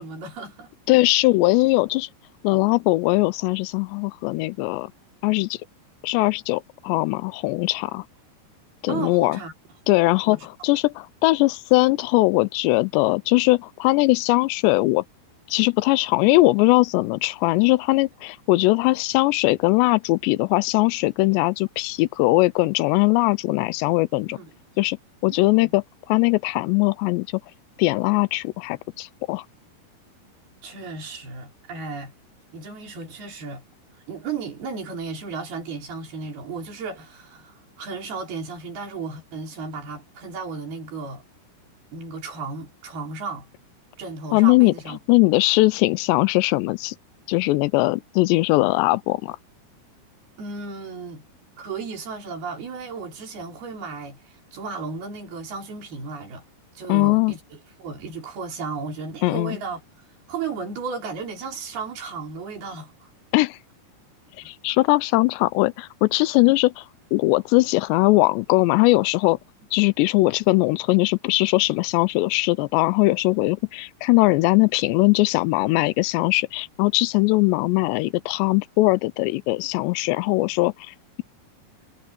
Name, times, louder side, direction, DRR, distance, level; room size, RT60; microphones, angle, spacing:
voice 1, 0.0-0.7 8.9-9.5 10.3-10.5 24.3-24.5 25.4-25.7 30.6-32.1 32.5-33.6 34.1-41.2 41.9-43.5 44.0-45.0 50.4-51.2 51.6-56.4 56.8-59.8 60.3-63.1 64.4-64.5, right 4 dB, 65° right, 6.4 m, -34 dB
voice 2, 0.9-2.1 2.4-4.9 5.2-5.6 6.0-8.0 8.8-9.4 9.9-15.0 15.5-24.4 24.8-25.0 25.2-27.4 27.8-29.5 44.3-44.7 45.1-47.0 47.3-49.4 56.9-57.3 59.2-59.6 63.3-63.6 64.5-66.8 67.1-69.4 69.7-80.9, left 21 dB, 90° left, 2.8 m, -20 dB
omnidirectional pair, 4.9 m